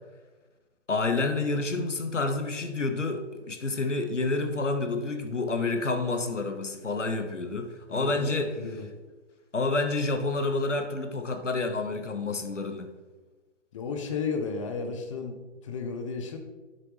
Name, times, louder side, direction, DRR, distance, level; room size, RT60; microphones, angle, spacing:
voice 1, 0.9-8.5 9.5-12.9, left 3 dB, 80° left, 6 dB, 1.3 m, -29 dB
voice 2, 7.9-8.9 13.7-16.4, left 5 dB, 25° left, 5 dB, 0.8 m, -34 dB
9.8 x 7.7 x 3.2 m, 1.3 s
figure-of-eight pair, 140°, 36 cm